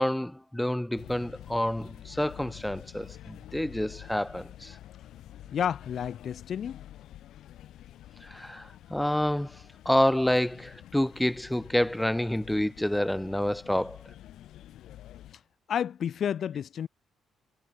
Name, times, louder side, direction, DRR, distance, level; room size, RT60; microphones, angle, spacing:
voice 1, 0.0-4.8 8.2-14.0, left 1 dB, 5° left, 1.0 m, -28 dB
sound 1, 1.0-15.3, left 12 dB, 80° left, 5.5 m, -48 dB
voice 2, 5.5-6.8 15.7-16.9, left 8 dB, 60° left, 1.3 m, -30 dB
cardioid pair, 90°, 0 cm